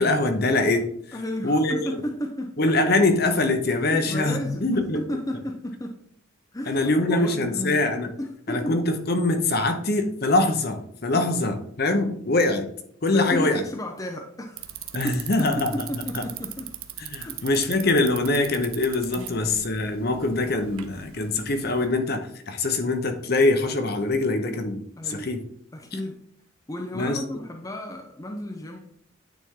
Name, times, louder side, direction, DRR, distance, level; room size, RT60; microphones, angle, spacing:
voice 1, 0.0-1.2 1.4-1.7 2.6-5.0 6.7-8.1 8.5-12.7 13.0-13.6 14.9-15.7 16.1-16.2 17.0-22.2 22.5-25.4 26.9-27.2, left 2 dB, 45° left, 6 dB, 0.9 m, -23 dB
voice 2, 1.1-2.6 3.9-6.0 6.5-7.9 8.2-8.8 11.1-11.3 13.1-14.7 15.0-16.7 17.1-17.4 19.1-19.5 25.0-25.3 25.7-26.2 26.7-28.8, left 1 dB, 15° left, 2 dB, 0.6 m, -33 dB
Bicycle, 14.6-21.9, right 12 dB, 90° right, 0.7 m, -40 dB
9.3 x 4.2 x 3.7 m, 0.67 s
head